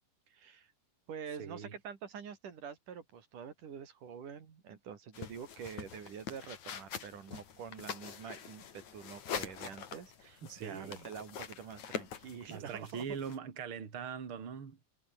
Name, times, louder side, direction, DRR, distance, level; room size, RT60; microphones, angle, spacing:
voice 1, 0.3-0.7 1.1-13.0, right 7 dB, 80° right, 4.5 m, -46 dB
voice 2, 1.4-1.8 10.4-11.1 12.5-14.8, right 7 dB, 45° right, 3.4 m, -42 dB
sound 1, 5.1-13.4, left 8 dB, 65° left, 3.8 m, -45 dB
omnidirectional pair, 3.6 m